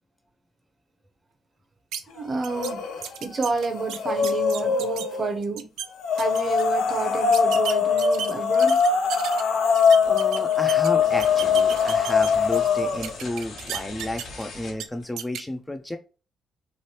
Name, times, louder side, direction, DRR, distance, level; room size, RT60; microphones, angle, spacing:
sound 1, 1.9-2.0 2.4-2.7 3.0-5.1 5.4-5.9 6.2-6.6 7.3-9.4 9.7-10.9 11.2-12.7 13.0-14.4 14.8-14.9 15.2-15.4, right 9 dB, 85° right, 0.3 m, -34 dB
voice 1, 2.1-2.8 3.2-5.7 6.1-8.8, right 4 dB, 35° right, 0.6 m, -29 dB
sound 2, 2.5-3.1 3.4-5.2 6.0-13.2, left 6 dB, 85° left, 0.5 m, -22 dB
sound 3, 10.0-10.4 10.7-15.2, left 3 dB, 70° left, 0.9 m, -41 dB
voice 2, 10.0-16.0, left 1 dB, 10° left, 0.3 m, -32 dB
3.1 x 2.5 x 2.8 m
cardioid pair, 90°, 0 cm